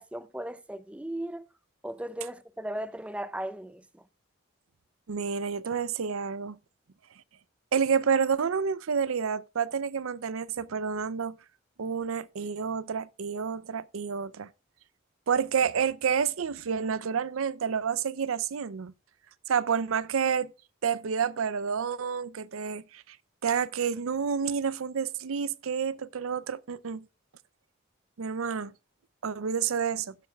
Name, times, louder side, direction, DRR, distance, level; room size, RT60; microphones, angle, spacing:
voice 1, 0.0-1.5 1.8-4.0, right 1 dB, 5° right, 0.4 m, -37 dB
voice 2, 5.1-6.6 7.7-11.4 11.8-14.5 15.3-18.9 19.5-20.5 20.8-23.2 23.4-27.0 28.2-28.7 29.2-30.1, right 6 dB, 85° right, 0.5 m, -29 dB
16.5 x 7.8 x 2.3 m
head